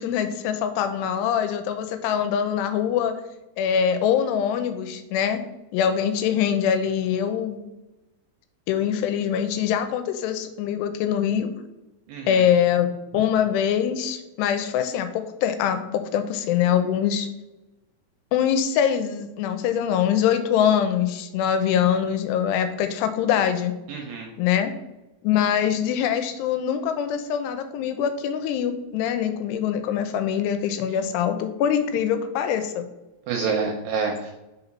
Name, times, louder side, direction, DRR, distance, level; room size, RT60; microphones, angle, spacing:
voice 1, 0.0-3.1 3.6-5.4 5.7-7.6 8.7-11.5 12.3-12.9 13.1-15.1 15.4-17.3 18.3-23.7 24.4-24.7 25.2-32.9, left 9 dB, 90° left, 9 dB, 2.7 m, -23 dB
voice 2, 12.1-12.4 23.9-24.3 33.3-34.3, right 5 dB, 80° right, 2 dB, 2.1 m, -27 dB
5.5 x 4.0 x 5.8 m, 0.98 s
omnidirectional pair, 4.8 m